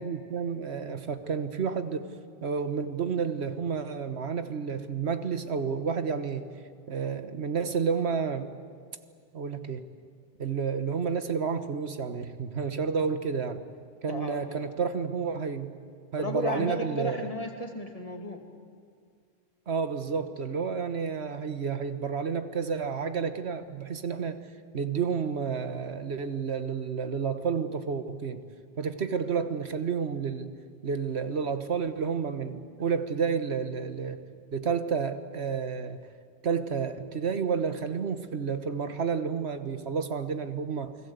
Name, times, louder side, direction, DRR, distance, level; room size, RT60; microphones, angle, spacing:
voice 1, 0.0-2.1 2.4-6.5 6.9-8.5 9.3-9.8 10.4-13.6 14.0-15.7 16.1-17.3 19.7-24.4 24.7-28.4 28.8-30.5 30.8-34.2 34.5-36.0 36.4-41.0, right 6 dB, 80° right, 9 dB, 1.5 m, -30 dB
voice 2, 14.1-14.6 16.2-18.4, left 1 dB, 35° left, 3 dB, 2.7 m, -34 dB
29.0 x 21.0 x 8.1 m, 2.1 s
omnidirectional pair, 1.1 m